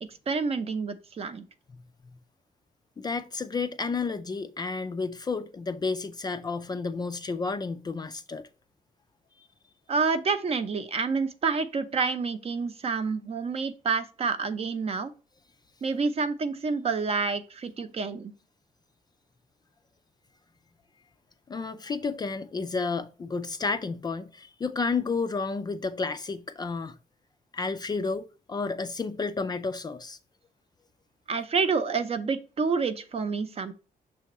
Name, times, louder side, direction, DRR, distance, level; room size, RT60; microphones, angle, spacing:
voice 1, 0.0-1.4 9.9-15.1 15.8-18.3 31.3-33.7, right 4 dB, 40° right, 0.7 m, -28 dB
voice 2, 3.0-8.4 9.4-9.5 21.5-26.9 27.5-30.2, left 4 dB, 25° left, 0.4 m, -31 dB
6.8 x 3.5 x 4.1 m
wide cardioid pair, 160°, 15 cm